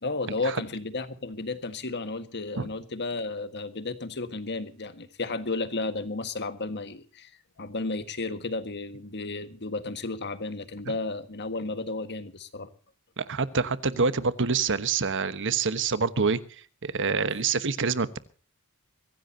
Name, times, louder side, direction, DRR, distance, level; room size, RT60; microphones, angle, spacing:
voice 1, 0.0-7.3 7.6-12.7, left 3 dB, 50° left, 1.6 m, -33 dB
voice 2, 13.2-16.4 16.8-18.2, right 5 dB, 60° right, 1.2 m, -26 dB
23.5 x 16.0 x 2.8 m
head